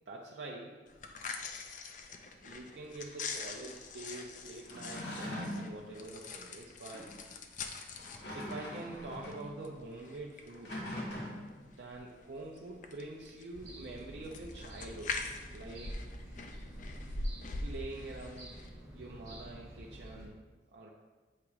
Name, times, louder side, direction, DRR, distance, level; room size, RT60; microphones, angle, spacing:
voice 1, 0.1-0.8 2.4-7.1 8.3-10.8 11.7-15.2 15.5-16.0 17.6-18.6 18.9-20.4 20.7-20.9, right 2 dB, 75° right, -3 dB, 0.6 m, -45 dB
sound 1, 0.9-18.7, left 3 dB, 45° left, 0.5 m, -44 dB
sound 2, 4.6-5.7 6.9-7.1 7.9-9.5 10.5-11.6, left 1 dB, 80° left, 1.6 m, -41 dB
sound 3, 13.5-20.3, equal, 20° right, 1.6 m, -49 dB
7.5 x 2.9 x 4.8 m, 1.3 s
head